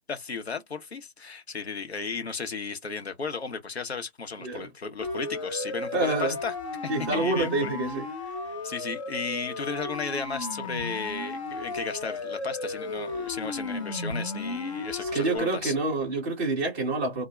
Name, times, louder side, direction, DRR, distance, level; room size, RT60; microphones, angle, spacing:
voice 1, 0.1-6.5 6.8-7.7 8.6-15.7, left 5 dB, 80° left, 0.8 m, -34 dB
voice 2, 4.4-4.7 5.9-6.4 6.9-8.1 15.0-17.3, right 2 dB, 15° right, 0.6 m, -27 dB
Siren, 5.0-15.4, left 3 dB, 30° left, 0.6 m, -34 dB
2.4 x 2.1 x 3.1 m
figure-of-eight pair, 145°, 31 cm